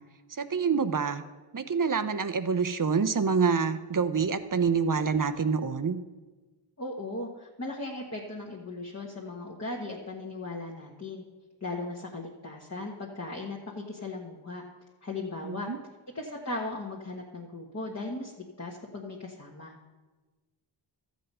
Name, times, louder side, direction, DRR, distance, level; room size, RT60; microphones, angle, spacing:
voice 1, 0.3-1.2 1.5-6.0 15.4-15.8, right 5 dB, 40° right, 10 dB, 0.6 m, -27 dB
voice 2, 6.8-11.2 11.6-14.6 15.0-15.7 16.1-19.8, left 2 dB, 30° left, -2 dB, 1.3 m, -37 dB
13.0 x 7.8 x 5.4 m, 1.3 s
wide cardioid pair, 75°, 48 cm